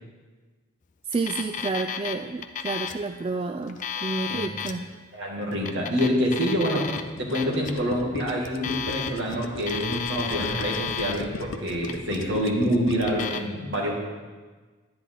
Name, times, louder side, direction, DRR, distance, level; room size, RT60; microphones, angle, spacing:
Alarm, 1.1-2.1 2.4-3.0 3.6-4.7 5.5-7.0 7.3-7.7 8.4-9.3 9.6-11.2 11.7-12.2 13.0-13.4, left 8 dB, 40° left, 0.5 m, -32 dB
voice 1, 1.1-4.9, right 3 dB, 25° right, 6 dB, 0.3 m, -30 dB
voice 2, 3.9-4.5 5.1-6.9 7.2-14.0, equal, 60° right, -2 dB, 2.2 m, -26 dB
Gurgling, 6.3-13.4, left 3 dB, 85° left, 0.7 m, -38 dB
10.5 x 10.0 x 3.9 m, 1.4 s
head